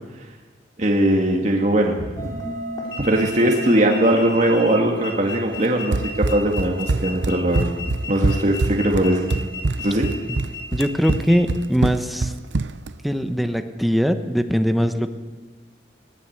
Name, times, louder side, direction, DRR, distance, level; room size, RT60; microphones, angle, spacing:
voice 1, 0.8-2.3 3.0-7.7 8.1-9.3 9.8-10.1, right 1 dB, 40° right, 0 dB, 2.0 m, -20 dB
sound 1, 2.2-11.5, right 1 dB, 20° left, 4.2 m, -37 dB
sound 2, 2.8-11.4, left 3 dB, 80° left, 7.2 m, -35 dB
Run, 5.9-12.9, right 3 dB, 85° right, 0.7 m, -24 dB
voice 2, 10.7-12.3 13.0-15.1, equal, ahead, 7 dB, 1.1 m, -21 dB
21.0 x 17.0 x 8.0 m, 1.3 s
head